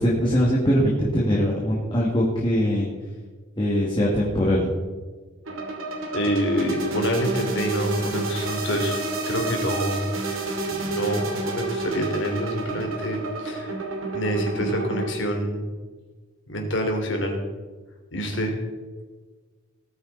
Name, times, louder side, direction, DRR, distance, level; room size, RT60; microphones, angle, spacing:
voice 1, 0.0-2.9 3.6-4.7, equal, 20° left, -4 dB, 2.3 m, -22 dB
sound 1, 5.5-15.1, right 3 dB, 75° right, 2.5 m, -30 dB
voice 2, 6.1-10.1 10.6-13.8 14.1-15.7 16.5-17.4 18.1-18.6, equal, 60° left, 2 dB, 3.2 m, -26 dB
19.0 x 9.3 x 4.1 m, 1.4 s
head